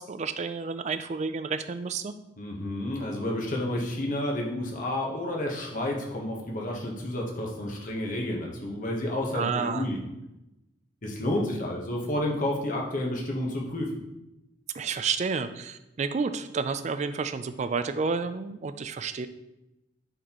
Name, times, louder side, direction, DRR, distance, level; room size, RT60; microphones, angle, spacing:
voice 1, 0.0-2.1 9.3-9.9 14.7-19.3, right 5 dB, 35° right, 11 dB, 0.3 m, -30 dB
voice 2, 2.4-10.0 11.0-13.9, left 1 dB, 45° left, -1 dB, 1.1 m, -30 dB
9.1 x 4.2 x 3.0 m, 0.93 s
head